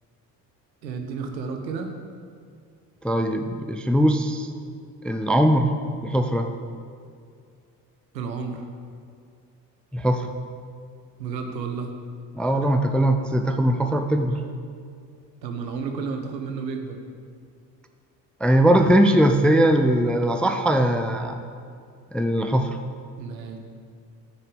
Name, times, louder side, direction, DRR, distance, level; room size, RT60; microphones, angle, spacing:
voice 1, 0.8-2.0 8.1-8.6 11.2-11.9 12.4-12.7 15.4-17.0 23.2-23.6, right 5 dB, 80° right, 5 dB, 1.0 m, -32 dB
voice 2, 3.0-4.5 5.0-5.7 6.0-6.5 9.9-10.3 12.4-14.4 18.4-21.4 22.1-22.8, right 1 dB, ahead, 7 dB, 0.3 m, -20 dB
7.3 x 6.7 x 6.8 m, 2.2 s
figure-of-eight pair, 55°, 50 cm